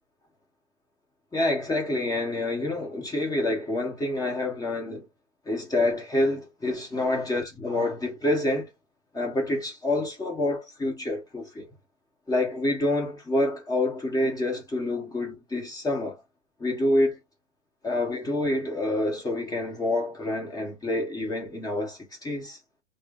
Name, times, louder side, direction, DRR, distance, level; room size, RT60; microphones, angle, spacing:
voice 1, 1.3-5.1 5.5-8.7 9.1-11.7 12.3-16.2 16.6-17.2 17.8-22.6, left 1 dB, 10° left, 1.0 m, -27 dB
3.2 x 2.1 x 3.7 m
hypercardioid pair, 125°, 35 cm